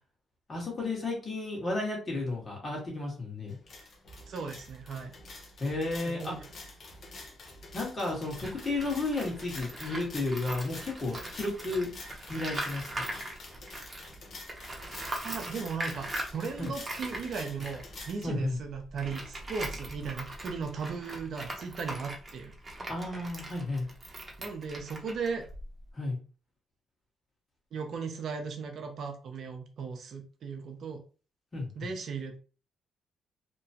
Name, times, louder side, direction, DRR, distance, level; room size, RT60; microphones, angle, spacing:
voice 1, 0.5-3.6 5.6-6.3 7.7-11.9 12.3-13.1 16.6-16.7 18.2-18.6 22.9-23.9 25.9-26.2 31.5-31.7, left 2 dB, 30° left, -2 dB, 1.5 m, -33 dB
sound 1, 3.5-18.2, left 2 dB, 50° left, 0.8 m, -47 dB
voice 2, 4.3-5.1 6.0-6.4 15.2-22.5 24.4-25.4 27.7-31.0 31.8-32.4, right 5 dB, 65° right, 5 dB, 0.6 m, -37 dB
Tools, 8.3-14.1 14.5-25.9, right 1 dB, 25° right, 0.9 m, -41 dB
2.9 x 2.2 x 2.8 m, 0.37 s
cardioid pair, 90°, 0 cm